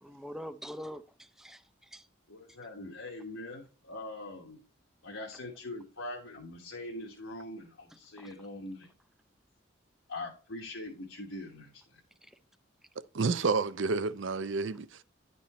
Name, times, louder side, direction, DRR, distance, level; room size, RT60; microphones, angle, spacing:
voice 1, 0.0-2.1 8.2-8.3 12.2-12.4, equal, ahead, 0.4 m, -45 dB
voice 2, 2.3-4.6 5.0-8.9 10.1-12.0, left 2 dB, 85° left, 1.4 m, -42 dB
voice 3, 13.1-15.0, right 4 dB, 70° right, 0.5 m, -30 dB
10.0 x 4.3 x 4.2 m
head